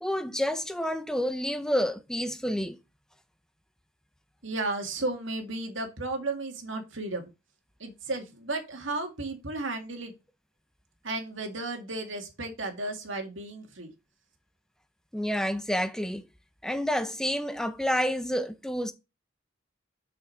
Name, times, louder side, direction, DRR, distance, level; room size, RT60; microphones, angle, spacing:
voice 1, 0.0-2.8 15.1-16.2 16.6-18.9, equal, 5° left, 0.7 m, -29 dB
voice 2, 4.4-7.3 7.8-10.1 11.0-13.9, right 2 dB, 70° right, 2.2 m, -34 dB
6.3 x 6.2 x 4.5 m
head